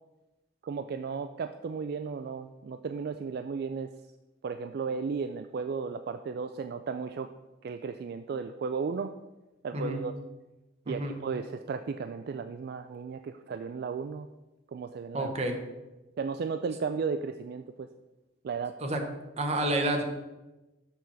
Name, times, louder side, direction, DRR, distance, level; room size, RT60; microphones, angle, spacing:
voice 1, 0.6-3.9 4.4-7.3 7.6-9.1 9.6-10.1 10.9-14.3 14.7-15.3 16.2-17.9 18.4-18.8, right 5 dB, 55° right, 8 dB, 0.3 m, -34 dB
voice 2, 9.7-10.0 10.9-11.1 15.1-15.6 18.8-19.0 19.4-20.0, right 1 dB, 35° right, 3 dB, 1.0 m, -29 dB
6.9 x 4.7 x 5.6 m, 1.0 s
head